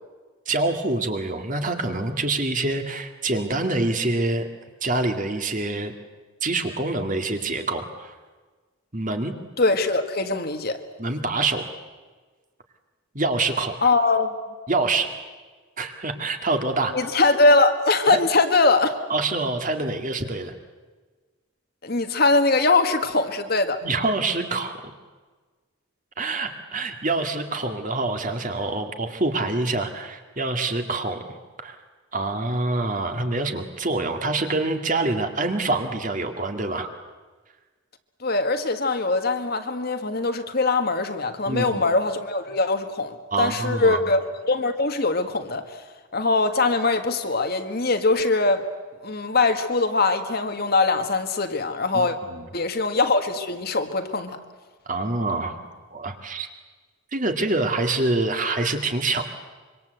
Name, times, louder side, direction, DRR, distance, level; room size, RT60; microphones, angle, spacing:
voice 1, 0.5-4.5 4.8-5.9 6.4-8.1 8.9-9.3 11.0-11.6 13.1-13.8 14.7-15.1 15.8-17.0 18.1-18.2 19.1-20.5 23.8-24.8 26.2-31.2 31.6-31.8 32.1-36.9 41.5-41.8 43.3-44.0 51.9-52.5 54.9-55.6 55.9-56.5 57.1-59.2, right 2 dB, 35° right, 5 dB, 2.2 m, -26 dB
voice 2, 9.6-10.8 13.8-14.3 16.9-18.9 21.8-23.8 38.2-45.8 46.1-48.6 49.0-52.2 52.5-54.4, left 3 dB, 45° left, 7 dB, 1.7 m, -22 dB
25.5 x 24.5 x 8.1 m, 1.4 s
head